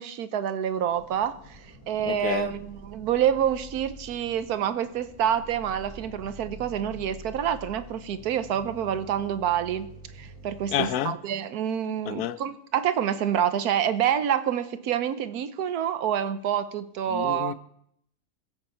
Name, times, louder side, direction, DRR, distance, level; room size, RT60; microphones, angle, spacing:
voice 1, 0.0-17.5, right 9 dB, 85° right, 1.3 m, -27 dB
sound 1, 0.9-10.8, right 1 dB, 25° left, 4.2 m, -46 dB
voice 2, 2.0-2.5 10.7-11.1 12.1-12.4 17.1-17.5, left 11 dB, 90° left, 1.2 m, -29 dB
21.0 x 8.0 x 4.4 m
omnidirectional pair, 1.6 m